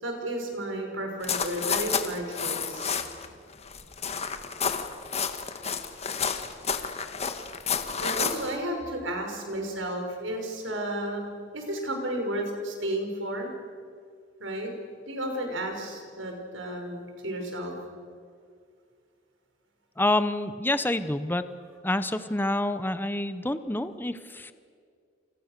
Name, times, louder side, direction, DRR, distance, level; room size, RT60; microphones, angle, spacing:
voice 1, 0.0-3.0 8.0-13.5 14.4-14.7 15.1-17.7 22.2-22.3, right 1 dB, 80° right, 3 dB, 5.9 m, -33 dB
sound 1, 1.2-3.3 3.5-8.6, left 6 dB, 35° left, 1.6 m, -30 dB
voice 2, 20.0-21.4 21.8-24.5, left 1 dB, 10° left, 12 dB, 0.9 m, -27 dB
29.0 x 28.5 x 6.8 m, 2.2 s
head